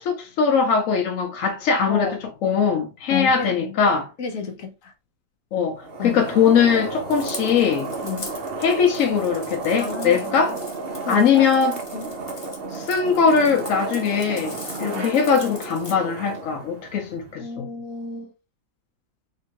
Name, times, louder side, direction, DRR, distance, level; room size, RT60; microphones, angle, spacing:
voice 1, 0.0-4.1 5.5-7.9 8.6-10.6 11.1-11.7 12.7-17.7, left 6 dB, 70° left, 0.7 m, -21 dB
voice 2, 3.1-3.6 4.2-4.9 6.0-6.2 8.0-8.3 9.8-10.3 11.0-11.5 11.9-12.1 14.8-15.1 17.4-18.3, left 4 dB, 55° left, 1.0 m, -31 dB
sound 1, 5.8-17.3, right 3 dB, 75° right, 0.5 m, -33 dB
sound 2, 7.1-15.9, left 2 dB, 35° left, 0.5 m, -41 dB
3.9 x 3.0 x 2.9 m
omnidirectional pair, 2.1 m